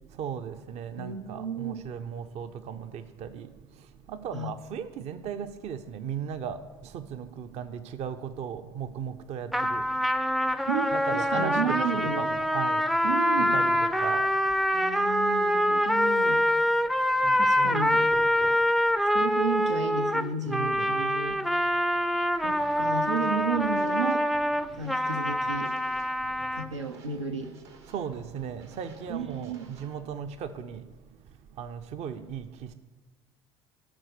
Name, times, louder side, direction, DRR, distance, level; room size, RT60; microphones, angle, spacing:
voice 1, 0.1-9.9 10.5-10.6 10.9-11.8 12.2-13.0 13.5-14.6 17.0-19.1 20.5-21.0 27.9-31.2 31.5-32.7, right 7 dB, 45° right, 0.6 m, -37 dB
voice 2, 1.0-1.7 4.3-4.5 10.7-12.3 13.0-13.6 14.7-16.4 17.3-18.1 19.1-21.4 22.4-24.2 24.8-25.7 26.5-27.5 29.1-29.7, right 4 dB, 85° right, 0.6 m, -32 dB
sound 1, 9.5-26.7, equal, ahead, 0.4 m, -25 dB
sound 2, 22.5-30.0, right 4 dB, 70° right, 1.2 m, -51 dB
12.5 x 4.4 x 6.6 m
figure-of-eight pair, 60°, 15 cm